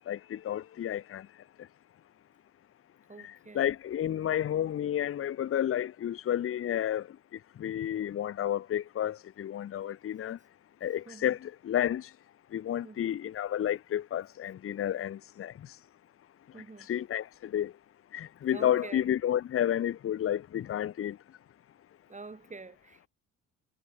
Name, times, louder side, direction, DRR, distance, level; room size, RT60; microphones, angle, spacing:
voice 1, 0.1-1.3 1.6-1.7 3.2-10.4 10.8-12.1 12.5-15.8 16.6-17.7 18.1-21.2, left 11 dB, 45° left, 0.7 m, -31 dB
voice 2, 3.1-3.7 11.1-11.4 12.8-13.1 16.5-16.9 18.5-19.0 22.1-23.1, right 3 dB, 25° right, 5.7 m, -46 dB
cardioid pair, 90°, 30 cm